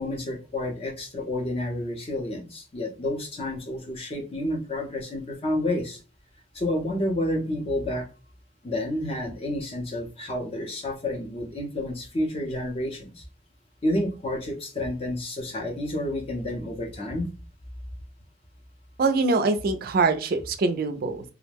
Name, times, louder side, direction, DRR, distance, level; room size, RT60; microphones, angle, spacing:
voice 1, 0.0-6.0 6.5-8.1 8.6-13.2 13.8-17.3, left 1 dB, 30° left, 1 dB, 0.6 m, -30 dB
voice 2, 19.0-21.2, right 3 dB, 50° right, 8 dB, 0.3 m, -23 dB
2.3 x 2.1 x 3.3 m, 0.34 s
head